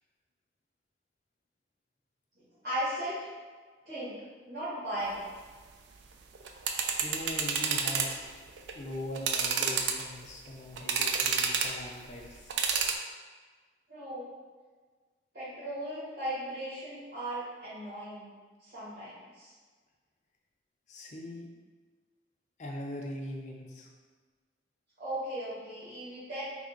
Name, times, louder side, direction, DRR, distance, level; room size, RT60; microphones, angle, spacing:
voice 1, 2.6-3.2 3.8-4.1 4.4-5.3 13.9-14.3 15.3-18.3 18.6-19.5 25.0-26.4, right 1 dB, 55° right, -14 dB, 1.5 m, -37 dB
sound 1, 6.4-8.2 8.6-8.7 9.2-10.3 10.8-11.8 12.5-13.0, right 6 dB, 80° right, 0.3 m, -29 dB
voice 2, 7.0-8.2 8.7-12.6 20.9-21.5 22.6-23.9, left 1 dB, 40° left, 0 dB, 0.5 m, -41 dB
3.4 x 2.1 x 3.8 m, 1.4 s
head